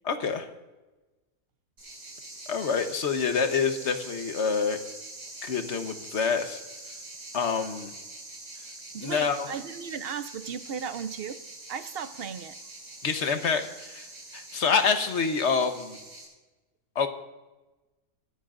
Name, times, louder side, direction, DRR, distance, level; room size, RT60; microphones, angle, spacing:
voice 1, 0.1-0.5 2.5-4.8 5.4-6.6 7.3-7.9 9.0-9.5 13.0-14.1 14.3-16.0 16.9-17.1, left 5 dB, 50° left, 7 dB, 1.3 m, -27 dB
sound 1, 1.8-16.3, right 2 dB, 75° right, 6.5 m, -44 dB
voice 2, 8.9-11.4 11.7-12.6 13.1-13.3, right 7 dB, 55° right, 12 dB, 0.7 m, -36 dB
22.5 x 13.0 x 2.6 m, 1.1 s
omnidirectional pair, 1.6 m